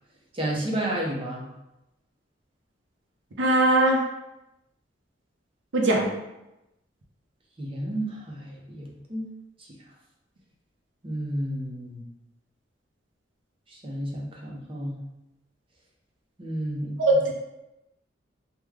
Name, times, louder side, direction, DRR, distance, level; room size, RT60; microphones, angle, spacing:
voice 1, 0.3-1.5 7.6-9.3 9.6-9.7 11.0-12.0 13.7-14.9 16.4-17.0, right 1 dB, 30° right, -2 dB, 0.6 m, -31 dB
voice 2, 3.4-4.0 5.7-6.1 17.0-17.3, right 1 dB, 75° right, -1 dB, 0.6 m, -20 dB
3.1 x 2.2 x 3.5 m, 0.94 s
head